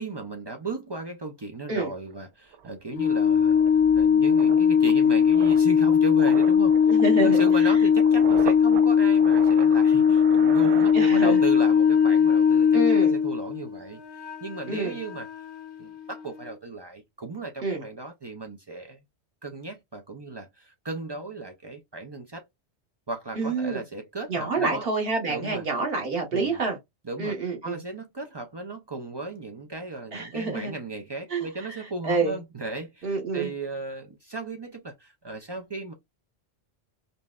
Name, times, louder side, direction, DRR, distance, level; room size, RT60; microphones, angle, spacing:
voice 1, 0.0-15.3 15.8-19.0 19.4-22.4 23.1-24.9 25.3-25.6 26.3-26.6 27.0-27.4 27.6-35.9, right 3 dB, 45° right, 0.3 m, -36 dB
sound 1, 2.1-2.2 2.5-11.6 11.8-12.1, right 7 dB, 80° right, 0.9 m, -39 dB
Organ, 2.9-13.8, left 7 dB, 85° left, 0.9 m, -19 dB
voice 2, 6.9-7.4 10.9-11.4 12.7-13.1 14.7-15.0 17.6-17.8 23.4-23.8 24.3-26.8 27.2-27.8 30.1-30.7 31.3-31.5 32.0-32.4 33.0-33.5, right 3 dB, 60° right, 1.5 m, -27 dB
Wind instrument woodwind instrument, 11.1-16.6, left 6 dB, 55° left, 0.8 m, -43 dB
5.3 x 2.1 x 2.3 m
omnidirectional pair, 1.1 m